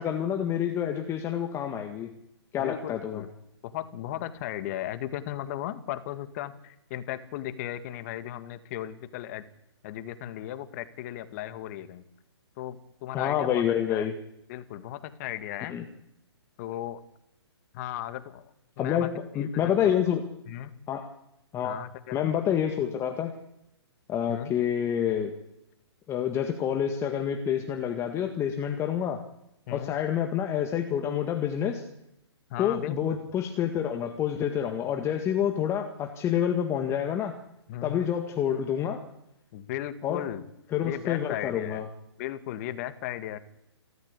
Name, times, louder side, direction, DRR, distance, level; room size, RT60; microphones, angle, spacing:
voice 1, 0.0-2.1 2.5-3.2 13.1-14.1 15.7-15.8 18.8-19.1 19.3-20.2 20.9-21.1 21.5-21.8 22.1-23.3 24.1-25.3 26.1-29.2 29.7-31.8 32.6-37.4 37.8-39.0 40.0-40.2 40.7-41.8, left 9 dB, 20° left, 5 dB, 1.8 m, -28 dB
voice 2, 2.6-3.3 3.6-9.4 9.8-12.0 12.6-13.6 13.9-14.1 14.5-15.8 16.6-17.0 17.7-19.1 19.4-20.0 20.5-20.7 21.6-22.3 24.3-24.5 29.7-29.9 32.5-33.2 37.7-38.1 39.5-40.4 40.8-41.8 42.2-43.4, left 12 dB, 35° left, 11 dB, 2.0 m, -36 dB
28.5 x 13.5 x 8.4 m, 0.84 s
hypercardioid pair, 135°, 14 cm